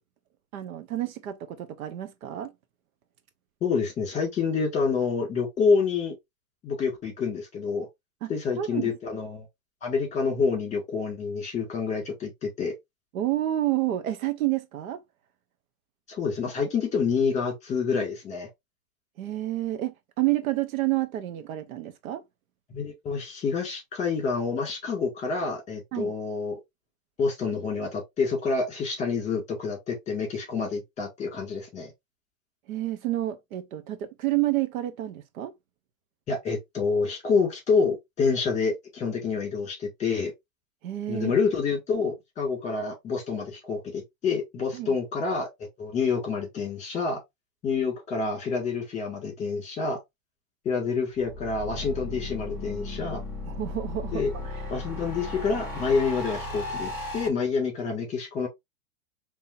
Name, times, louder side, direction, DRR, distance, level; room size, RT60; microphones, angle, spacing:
voice 1, 0.5-2.5 8.2-8.3 8.6-8.9 13.1-15.0 19.2-22.2 25.9-26.1 32.7-35.5 40.8-41.3 44.7-45.0 53.4-54.7, right 15 dB, 65° right, 0.8 m, -29 dB
voice 2, 3.6-6.2 6.6-7.9 8.3-9.4 9.8-12.7 16.1-18.5 22.7-26.6 27.2-31.9 36.3-40.3 41.1-47.2 47.6-50.0 50.6-53.2 54.1-54.3 54.7-58.5, left 5 dB, 15° left, 2.0 m, -27 dB
sound 1, 51.1-57.3, left 2 dB, 5° right, 0.4 m, -35 dB
5.4 x 2.9 x 2.6 m
supercardioid pair, 155°, 45 cm